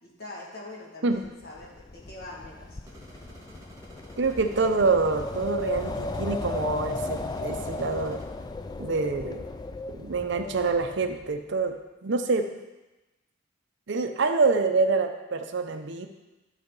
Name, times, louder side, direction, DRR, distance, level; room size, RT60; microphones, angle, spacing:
voice 1, 0.0-2.8, left 2 dB, 50° left, -3 dB, 2.0 m, -43 dB
Wind, 1.2-11.3, left 2 dB, 20° left, 0.3 m, -35 dB
sound 1, 2.8-8.3, equal, 15° right, 1.4 m, -49 dB
voice 2, 4.2-8.2 8.8-9.4 9.9-11.8 12.0-12.5 13.9-16.1, right 4 dB, 60° right, 7 dB, 0.6 m, -26 dB
11.5 x 5.5 x 4.0 m, 1.1 s
head